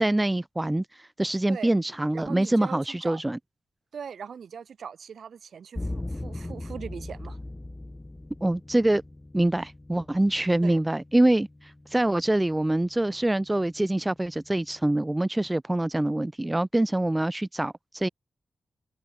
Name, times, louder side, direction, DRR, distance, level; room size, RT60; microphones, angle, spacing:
voice 1, 0.0-3.4 8.4-9.0 9.3-18.1, right 1 dB, 10° right, 0.9 m, -25 dB
voice 2, 2.1-3.2 3.9-7.4 10.6-10.8, right 7 dB, 70° right, 3.3 m, -40 dB
sound 1, 5.7-14.8, left 2 dB, 15° left, 6.3 m, -41 dB
wide cardioid pair, 155°, 0 cm